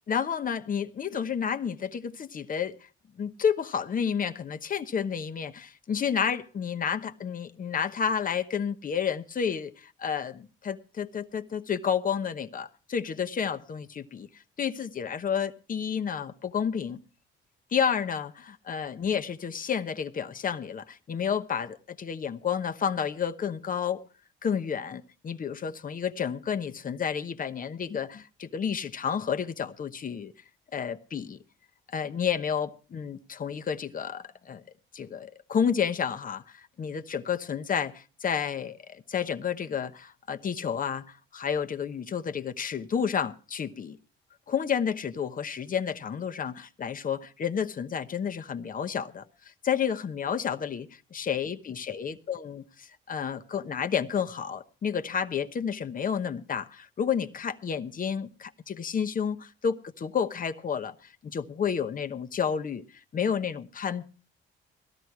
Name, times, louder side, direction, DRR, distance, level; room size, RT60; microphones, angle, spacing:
voice 1, 0.1-2.7 3.2-14.3 14.6-17.0 17.7-24.0 24.4-30.3 30.7-31.4 31.9-34.6 34.9-44.0 44.5-49.2 49.6-60.9 61.2-62.8 63.1-64.0, left 7 dB, 45° left, 1.0 m, -30 dB
18.0 x 12.5 x 4.7 m
cardioid pair, 90°, 20 cm